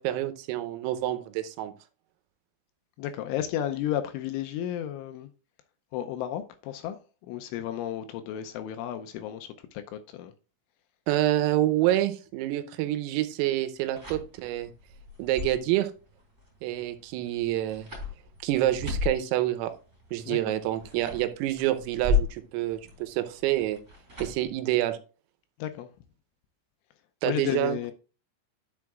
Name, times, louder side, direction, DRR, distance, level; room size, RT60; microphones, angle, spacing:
voice 1, 0.0-1.7 11.1-14.7 15.2-15.9 16.6-17.9 18.4-19.7 20.1-23.8 24.2-25.0 27.2-27.9, right 14 dB, 85° right, 3.5 m, -27 dB
voice 2, 3.0-5.3 5.9-7.0 7.2-10.3 20.3-20.4 25.6-25.9 27.3-27.9, left 11 dB, 80° left, 2.9 m, -33 dB
sound 1, 13.8-24.5, left 4 dB, 15° right, 3.0 m, -35 dB
10.5 x 7.2 x 2.4 m
omnidirectional pair, 5.9 m